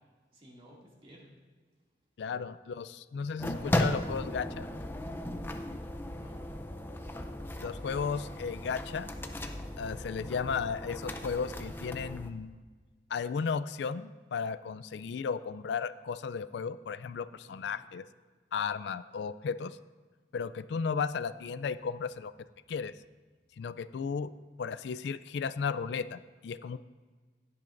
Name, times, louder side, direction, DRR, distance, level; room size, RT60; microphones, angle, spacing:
voice 1, 0.3-1.3 6.1-6.4 17.4-17.9, equal, 30° right, -3 dB, 2.3 m, -55 dB
voice 2, 2.2-4.7 7.6-9.1 9.8-12.6 13.1-18.0 18.5-19.8 20.3-22.3 22.7-22.9 23.6-24.3 24.6-26.8, left 6 dB, 70° left, 15 dB, 0.3 m, -34 dB
sound 1, 3.4-12.3, left 1 dB, 10° left, 0.5 m, -36 dB
16.5 x 10.5 x 2.6 m, 1.4 s
head